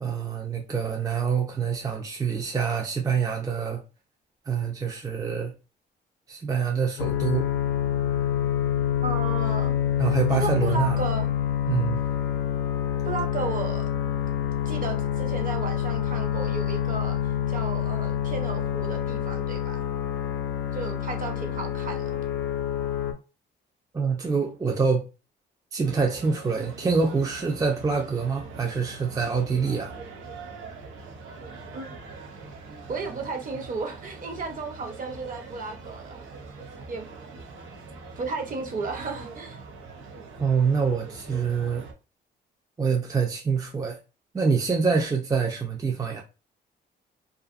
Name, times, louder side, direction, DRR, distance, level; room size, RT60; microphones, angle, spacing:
voice 1, 0.0-3.8 4.5-5.5 6.3-7.6 10.0-11.0 11.7-12.0 23.9-25.1 25.7-29.9 40.4-41.9 42.8-44.0 44.3-46.2, right 5 dB, 20° right, 0.4 m, -26 dB
sound 1, 7.0-23.1, left 10 dB, 80° left, 0.5 m, -27 dB
voice 2, 9.0-9.7 10.3-11.3 13.1-13.9 14.7-17.2 17.5-19.8 20.7-22.2 31.7-31.9 32.9-36.3 36.9-37.4 38.2-39.6, right 4 dB, 45° right, 0.8 m, -34 dB
sound 2, 25.8-41.9, right 4 dB, 85° right, 0.7 m, -43 dB
2.5 x 2.4 x 2.5 m
cardioid pair, 90°, 20 cm